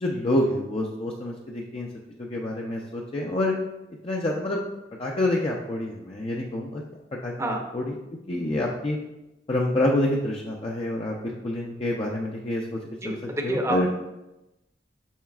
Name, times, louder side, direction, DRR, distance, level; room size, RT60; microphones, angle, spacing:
voice 1, 0.0-1.9 2.3-3.5 4.0-4.6 5.0-6.8 7.2-7.8 8.3-9.0 9.5-11.2 11.4-12.8 13.0-13.2 13.4-13.9, left 1 dB, 35° left, -2 dB, 0.5 m, -27 dB
voice 2, 13.0-13.9, right 1 dB, 15° right, 2 dB, 0.7 m, -28 dB
7.2 x 5.6 x 2.4 m, 0.96 s
head